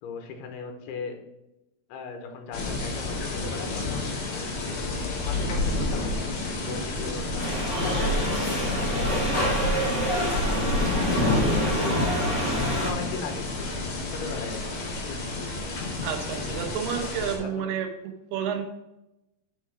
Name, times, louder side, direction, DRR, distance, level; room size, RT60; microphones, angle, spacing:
voice 1, 0.0-1.1 1.9-4.4 4.7-7.5 8.1-10.8 11.5-13.5 14.1-15.2 17.4-17.7, left 5 dB, 90° left, 4 dB, 3.0 m, -39 dB
sound 1, 2.5-17.4, left 2 dB, 60° left, 2.9 m, -29 dB
sound 2, 7.4-12.9, equal, 35° left, 3.0 m, -27 dB
voice 2, 16.0-17.9 18.3-18.6, right 8 dB, 85° right, 6 dB, 2.9 m, -30 dB
6.6 x 5.1 x 4.7 m, 0.91 s
omnidirectional pair, 4.5 m